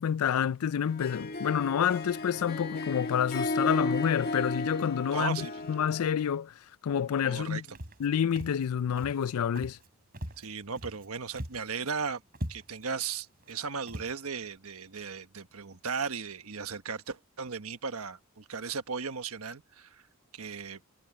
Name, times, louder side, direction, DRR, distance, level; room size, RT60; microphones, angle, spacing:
voice 1, 0.0-6.5 6.8-7.6 8.0-9.8, left 8 dB, 85° left, 0.4 m, -28 dB
Harp, 0.8-6.2, left 2 dB, 45° left, 2.4 m, -34 dB
voice 2, 5.1-5.6 7.2-7.6 10.4-12.2 12.5-20.0 20.3-20.8, right 5 dB, 85° right, 1.3 m, -36 dB
Walk footsteps, 7.7-8.1 8.4-8.7 9.0-9.3 9.6-9.9 10.1-11.1 11.3-11.7 12.0-12.1 12.3-12.9 13.4-13.5 13.9-14.1, equal, 45° right, 5.9 m, -40 dB
head